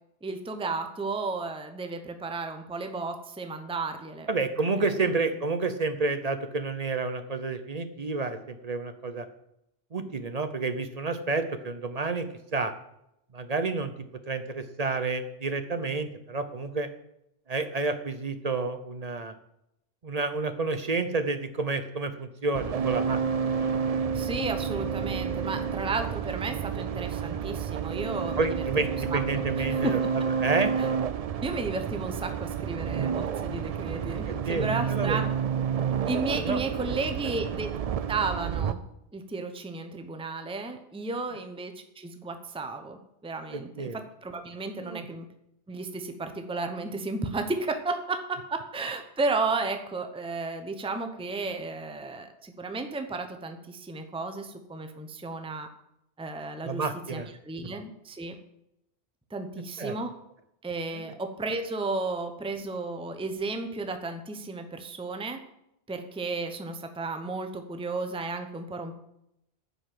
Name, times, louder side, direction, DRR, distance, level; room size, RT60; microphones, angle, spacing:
voice 1, 0.2-4.3 4.7-4.8 24.1-30.1 30.8-30.9 31.4-35.3 36.0-37.7 38.1-38.8 39.1-45.3 45.7-55.7 56.2-58.3 59.3-60.1 60.6-65.4 65.9-69.0, right 3 dB, 5° right, 6 dB, 0.7 m, -33 dB
voice 2, 4.3-9.3 9.9-12.3 12.5-12.7 13.3-13.9 14.3-16.9 17.5-19.3 20.0-23.2 23.5-23.7 28.4-30.0 30.4-30.7 34.3-35.2 36.3-36.6 43.5-44.0 44.8-45.0 56.6-57.3 59.8-59.9, right 3 dB, 40° right, 9 dB, 0.7 m, -30 dB
sound 1, 22.5-38.7, right 7 dB, 55° right, 0.4 m, -30 dB
10.0 x 5.5 x 7.7 m, 0.81 s
omnidirectional pair, 1.2 m